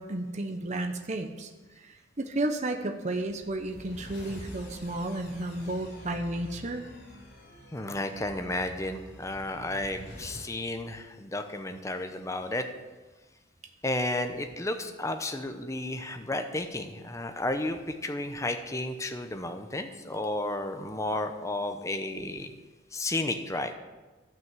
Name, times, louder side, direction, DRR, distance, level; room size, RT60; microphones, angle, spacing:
voice 1, 0.0-1.5 1.8-6.8, right 1 dB, 40° right, 4 dB, 0.8 m, -32 dB
sound 1, 3.1-10.5, equal, 60° left, 4.2 m, -47 dB
voice 2, 7.7-12.6 13.8-22.5 22.9-23.7, left 2 dB, 15° left, 6 dB, 0.7 m, -32 dB
12.5 x 5.9 x 7.5 m, 1.2 s
head